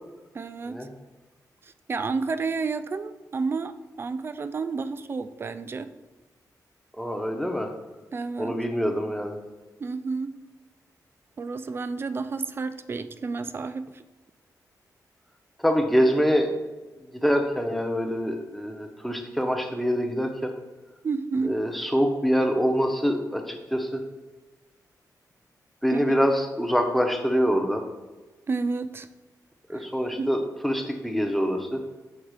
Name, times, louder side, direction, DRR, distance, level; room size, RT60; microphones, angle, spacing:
voice 1, 0.3-0.9 1.9-5.9 8.1-8.6 9.8-10.3 11.4-14.0 21.0-21.6 25.9-26.0 28.5-29.1 29.7-29.9 30.2-30.3, right 4 dB, 35° right, 12 dB, 0.3 m, -30 dB
voice 2, 7.0-7.7 8.4-9.4 15.6-16.5 17.1-20.5 21.4-24.0 25.8-27.8 29.7-31.8, equal, ahead, 4 dB, 0.7 m, -25 dB
6.5 x 3.6 x 4.8 m, 1.2 s
wide cardioid pair, 130°, 7 cm